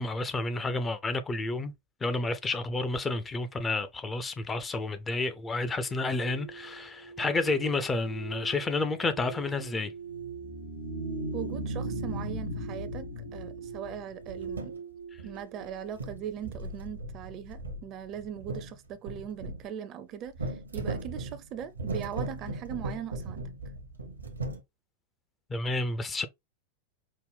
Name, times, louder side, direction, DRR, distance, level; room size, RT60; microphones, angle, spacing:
voice 1, 0.0-1.7 2.0-9.9 25.5-26.3, left 3 dB, 15° left, 0.5 m, -30 dB
sound 1, 5.8-16.8, right 7 dB, 75° left, 0.4 m, -44 dB
sound 2, 10.0-14.5, equal, 90° left, 2.8 m, -37 dB
voice 2, 11.3-14.8 15.2-23.5, right 9 dB, 35° right, 0.5 m, -40 dB
sound 3, 14.2-14.8 15.2-15.7 15.9-19.6 20.3-24.6, right 2 dB, 75° right, 0.8 m, -38 dB
5.2 x 2.1 x 3.4 m
figure-of-eight pair, 90°, 0 cm